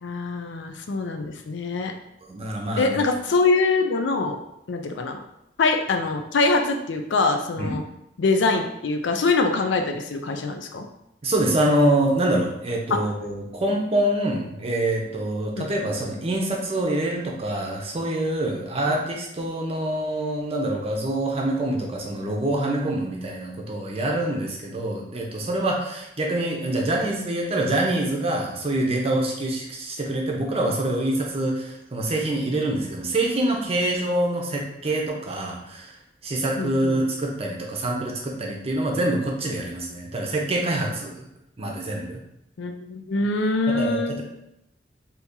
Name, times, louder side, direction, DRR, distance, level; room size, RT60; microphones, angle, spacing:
voice 1, 0.0-1.9 2.8-4.4 4.7-5.2 5.6-7.8 8.2-10.9 12.9-13.0 15.6-15.7 36.6-37.0 42.6-44.2, left 3 dB, 75° left, 5 dB, 0.4 m, -24 dB
voice 2, 2.3-3.0 7.6-7.8 11.2-35.9 36.2-41.3 41.6-42.2 43.7-44.2, right 1 dB, 35° right, -1 dB, 0.7 m, -25 dB
2.8 x 2.8 x 3.6 m, 0.82 s
head